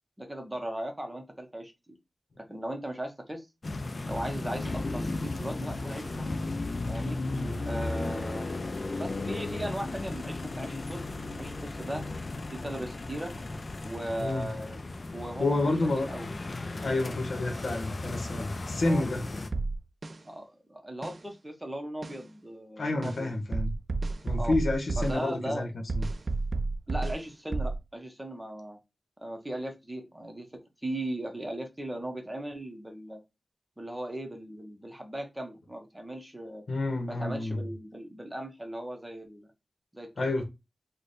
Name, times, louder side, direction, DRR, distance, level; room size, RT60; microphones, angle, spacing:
voice 1, 0.2-1.9 2.4-3.5 4.1-6.2 6.9-7.2 7.7-8.5 9.0-11.0 11.4-12.0 12.5-13.3 13.8-14.8 15.1-16.3 18.8-19.0 20.3-23.4 24.4-24.6 25.0-25.7 26.9-28.8 29.2-33.2 33.8-36.6 37.1-39.5 39.9-40.3, right 1 dB, 15° right, 0.8 m, -38 dB
sound 1, 3.6-19.5, left 2 dB, 50° left, 0.4 m, -35 dB
voice 2, 15.4-16.1 16.8-19.2 22.8-23.7 24.2-25.7 25.9-26.0 36.7-37.6 40.2-40.4, left 2 dB, 75° left, 0.8 m, -29 dB
sound 2, 19.5-20.2 21.0-21.2 22.0-22.2 23.0-23.2 23.5-25.2 25.9-27.2 27.5-27.8, right 3 dB, 50° right, 0.3 m, -31 dB
3.2 x 2.2 x 3.9 m
wide cardioid pair, 75°, 0 cm